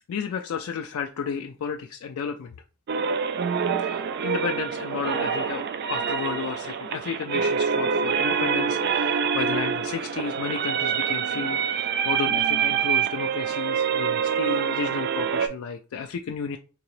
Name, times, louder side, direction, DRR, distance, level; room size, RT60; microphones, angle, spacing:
voice 1, 0.1-2.5 3.8-16.6, left 6 dB, 85° left, 5 dB, 0.4 m, -32 dB
sound 1, 2.9-15.5, right 7 dB, 50° right, 0.3 m, -26 dB
3.7 x 2.9 x 3.1 m, 0.35 s
head